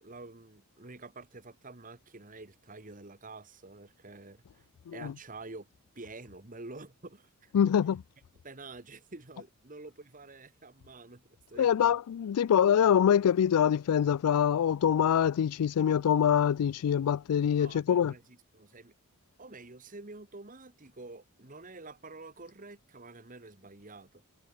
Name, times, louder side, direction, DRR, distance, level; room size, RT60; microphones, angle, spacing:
voice 1, 0.0-5.7 5.9-7.5 8.4-12.0 17.6-18.9 19.4-24.2, right 3 dB, 35° right, 1.6 m, -48 dB
voice 2, 7.5-8.0 11.6-18.1, left 8 dB, 85° left, 0.3 m, -25 dB
head